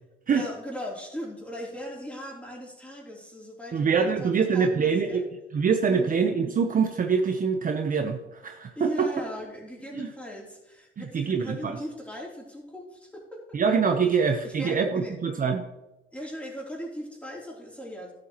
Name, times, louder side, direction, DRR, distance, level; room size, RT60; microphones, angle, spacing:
voice 1, 0.3-5.2 5.8-6.1 8.7-13.6 14.0-14.1 14.4-15.1 16.1-18.1, equal, 5° left, -3 dB, 3.2 m, -39 dB
voice 2, 3.7-5.2 5.5-9.1 9.9-10.1 11.0-11.8 13.5-15.6, right 5 dB, 45° right, 5 dB, 0.8 m, -24 dB
12.0 x 7.7 x 3.0 m, 0.99 s
cardioid pair, 90°, 20 cm